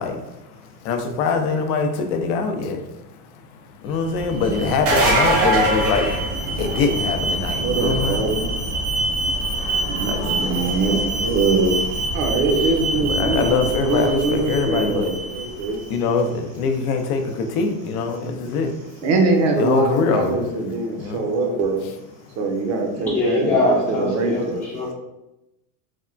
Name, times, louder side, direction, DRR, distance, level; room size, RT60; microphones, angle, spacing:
voice 1, 0.0-2.9 3.8-6.2 6.5-8.2 9.9-10.6 13.1-15.1 15.6-18.9 19.6-20.5 20.9-21.3, left 4 dB, 80° left, 6 dB, 0.6 m, -23 dB
Alarm, 4.0-16.0, right 1 dB, 55° right, 0.9 m, -26 dB
sound 1, 4.7-6.9 12.4-12.5 14.4-14.5, right 1 dB, 90° right, 1.2 m, -20 dB
voice 2, 7.6-8.4 9.9-15.8 19.0-21.8 22.4-23.6 23.9-24.6, right 3 dB, 40° right, 3 dB, 0.6 m, -23 dB
voice 3, 22.9-24.9, left 2 dB, 20° left, -6 dB, 0.5 m, -22 dB
3.5 x 2.1 x 2.4 m, 0.94 s
supercardioid pair, 120°, 44 cm